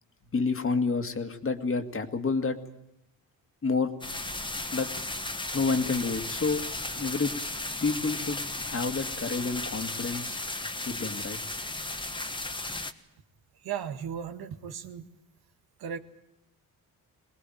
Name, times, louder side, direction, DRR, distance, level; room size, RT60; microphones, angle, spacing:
voice 1, 0.3-2.6 3.6-3.9 4.7-4.9 5.5-6.6 7.0-7.3 7.8-10.4 10.9-11.4, left 4 dB, 35° left, 8 dB, 2.1 m, -29 dB
sound 1, 4.0-12.9, left 2 dB, 15° left, 1.4 m, -35 dB
voice 2, 13.6-15.1 15.8-16.0, right 8 dB, 85° right, 8 dB, 1.9 m, -36 dB
23.5 x 19.5 x 9.2 m, 0.83 s
cardioid pair, 105°, 36 cm